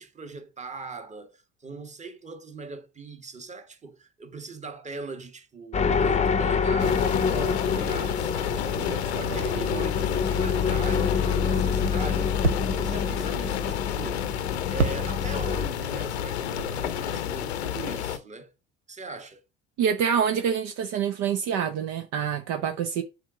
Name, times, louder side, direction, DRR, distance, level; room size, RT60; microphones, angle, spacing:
voice 1, 0.0-14.2 14.7-18.5 18.9-19.4, right 4 dB, 20° right, 1.4 m, -40 dB
sound 1, 5.7-15.7, left 6 dB, 20° left, 0.8 m, -27 dB
sound 2, 6.8-18.2, left 10 dB, 80° left, 0.8 m, -31 dB
sound 3, 8.5-11.2 11.5-15.6 15.8-17.1, right 3 dB, 90° right, 0.6 m, -34 dB
voice 2, 19.8-23.0, right 7 dB, 55° right, 0.8 m, -26 dB
7.2 x 4.1 x 3.7 m
hypercardioid pair, 65°, 32 cm